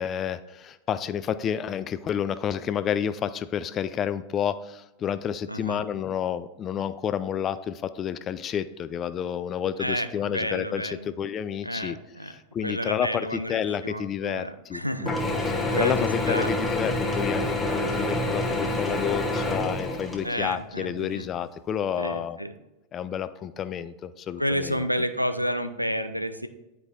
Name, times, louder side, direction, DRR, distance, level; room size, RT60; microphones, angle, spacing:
voice 1, 0.0-12.0 12.2-15.2 15.5-22.4 22.9-24.9, left 9 dB, 30° left, 14 dB, 0.3 m, -30 dB
voice 2, 5.5-5.8 9.8-11.1 11.6-12.3 12.6-15.2 15.7-16.5 20.2-21.3 22.0-22.5 24.4-26.5, equal, 90° right, 10 dB, 0.4 m, -30 dB
Mechanisms / Drill, 15.1-20.6, left 1 dB, 5° left, 1.0 m, -27 dB
9.6 x 4.5 x 2.5 m, 0.97 s
figure-of-eight pair, 90°, 0 cm